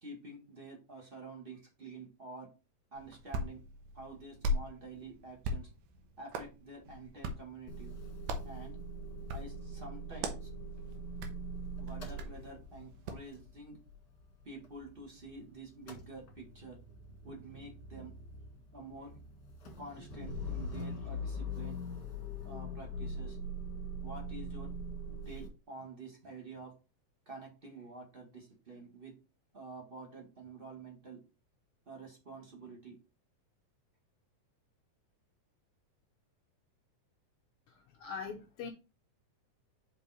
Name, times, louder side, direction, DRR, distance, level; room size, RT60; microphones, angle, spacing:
voice 1, 0.0-2.5 2.9-3.6 3.9-5.7 6.2-7.9 8.4-8.7 9.3-10.5 11.8-13.8 14.4-16.7 17.2-18.1 18.7-19.1 19.8-21.8 22.4-23.4 24.0-24.7 25.2-26.7 27.2-29.1 29.5-31.2 31.9-32.9, right 3 dB, 25° right, 1.3 m, -48 dB
Hands, 2.9-13.3, equal, 90° right, 2.5 m, -41 dB
Motor vehicle (road) / Engine starting / Idling, 7.7-15.4 15.6-25.5, equal, 40° left, 1.8 m, -43 dB
voice 2, 37.7-38.7, left 5 dB, 75° left, 1.3 m, -42 dB
5.5 x 5.2 x 4.1 m
omnidirectional pair, 3.5 m